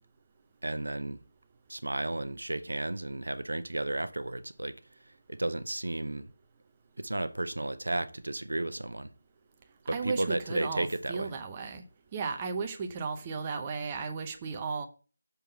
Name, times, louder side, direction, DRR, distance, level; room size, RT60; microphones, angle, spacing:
voice 1, 0.6-1.2 1.7-4.8 5.3-6.3 7.0-9.1 9.9-11.3, right 2 dB, 85° right, 0.7 m, -33 dB
voice 2, 9.9-11.8 12.1-14.9, right 5 dB, 20° right, 0.7 m, -35 dB
6.8 x 3.7 x 5.6 m
figure-of-eight pair, 165°, 0 cm